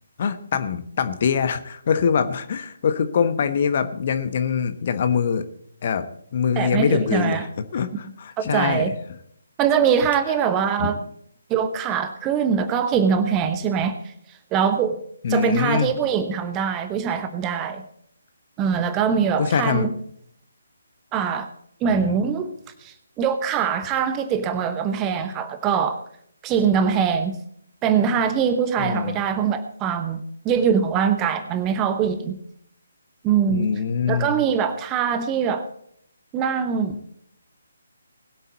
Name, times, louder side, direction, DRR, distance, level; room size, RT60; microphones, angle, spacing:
voice 1, 0.2-5.5 5.8-6.1 6.3-7.5 7.7-8.9 10.8-10.9 15.2-15.9 19.4-19.9 21.9-22.2 28.8-29.2 33.5-34.4, left 6 dB, 40° left, 10 dB, 1.2 m, -23 dB
voice 2, 6.6-7.4 8.4-8.9 9.6-11.0 11.5-14.1 14.5-15.0 15.3-17.8 18.6-19.9 21.1-21.5 21.8-22.5 22.8-26.0 26.4-27.4 27.8-32.4 33.2-33.7 34.1-35.6 36.3-37.1, right 7 dB, 15° right, 10 dB, 1.0 m, -23 dB
20.5 x 8.3 x 4.1 m, 0.68 s
figure-of-eight pair, 145°, 0 cm